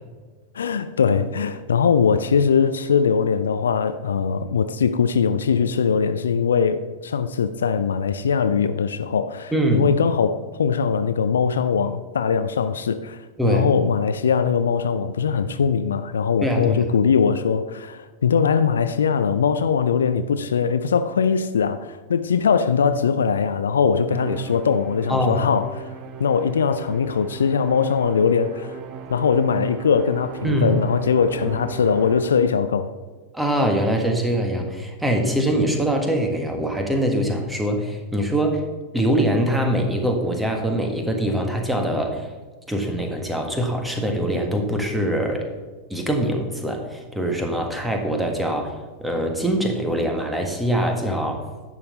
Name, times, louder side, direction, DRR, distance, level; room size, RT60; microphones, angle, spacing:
voice 1, 0.5-13.2 13.4-25.9 26.2-28.8 29.1-32.9, left 6 dB, 70° left, 0.4 m, -21 dB
voice 2, 9.5-9.9 13.4-13.7 16.4-16.9 25.1-25.5 30.4-30.7 33.3-38.6 38.9-42.3 42.7-45.5 45.9-51.5, right 1 dB, 5° right, 1.6 m, -23 dB
Musical instrument, 24.1-32.7, right 6 dB, 40° right, 0.7 m, -37 dB
11.0 x 7.4 x 4.1 m
figure-of-eight pair, 90°, 0 cm